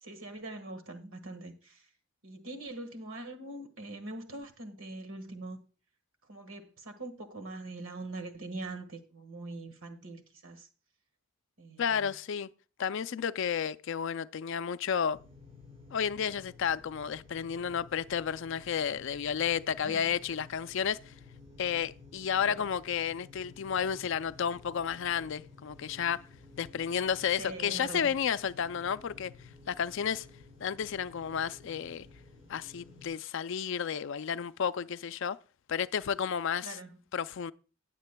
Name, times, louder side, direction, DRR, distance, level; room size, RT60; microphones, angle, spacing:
voice 1, 0.0-1.8 2.2-5.6 6.3-10.7 11.6-12.1 19.8-20.1 22.4-22.6 27.4-28.1 36.6-36.9, right 2 dB, 65° right, 1.5 m, -43 dB
voice 2, 11.8-12.5 12.8-15.2 15.9-21.1 21.6-26.3 26.6-30.3 30.6-32.1 32.5-35.4 35.7-36.8 37.1-37.5, left 7 dB, 60° left, 0.4 m, -32 dB
sound 1, 15.1-33.1, left 3 dB, 25° right, 5.7 m, -54 dB
18.5 x 7.4 x 2.2 m
head